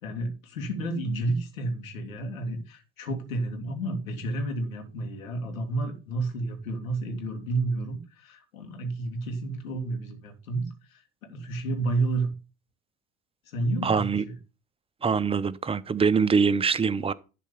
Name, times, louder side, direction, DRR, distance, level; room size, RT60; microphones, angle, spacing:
voice 1, 0.0-12.3 13.5-14.3, right 2 dB, 80° left, 2.6 m, -31 dB
voice 2, 13.8-14.2 15.0-17.1, right 5 dB, 15° right, 0.6 m, -23 dB
11.5 x 4.3 x 7.0 m
hypercardioid pair, 70°, 41 cm